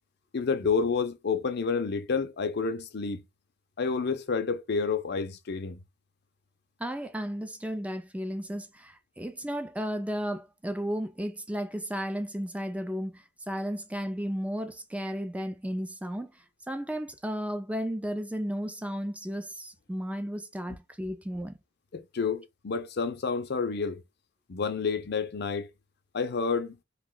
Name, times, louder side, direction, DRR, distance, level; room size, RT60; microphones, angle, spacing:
voice 1, 0.3-3.2 3.8-5.8 21.9-24.0 24.5-25.7 26.1-26.8, left 5 dB, 55° left, 0.6 m, -29 dB
voice 2, 6.8-16.3 16.7-21.6, equal, 5° right, 0.5 m, -34 dB
2.8 x 2.3 x 3.8 m
head